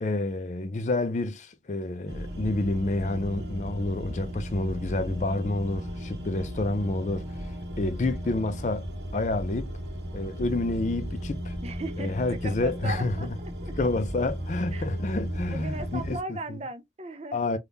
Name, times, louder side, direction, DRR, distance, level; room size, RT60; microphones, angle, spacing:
voice 1, 0.0-8.8 9.1-9.7 10.1-11.6 12.0-13.3 13.8-16.6 17.3-17.6, left 2 dB, 40° left, 0.4 m, -29 dB
sound 1, 2.1-16.2, equal, 75° right, 0.8 m, -35 dB
voice 2, 11.6-12.1 12.6-13.7 14.7-14.9 15.5-17.4, right 2 dB, 35° right, 0.5 m, -37 dB
3.4 x 2.3 x 2.6 m
head